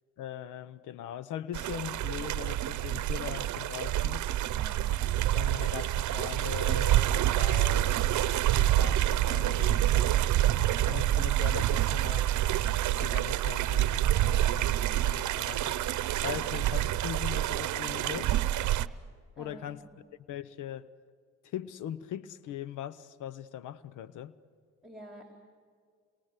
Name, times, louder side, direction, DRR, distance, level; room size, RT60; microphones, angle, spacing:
voice 1, 0.2-4.3 4.9-5.0 5.3-10.3 10.8-12.4 13.0-15.8 16.2-18.4 19.4-19.8 20.3-20.9 21.4-24.4, left 11 dB, 90° left, 0.9 m, -40 dB
sound 1, 1.5-18.9, right 13 dB, 70° right, 0.8 m, -27 dB
voice 2, 4.5-4.9 19.4-19.7 24.8-25.2, right 1 dB, ahead, 3.7 m, -48 dB
28.0 x 23.0 x 8.2 m
cardioid pair, 90°, 30 cm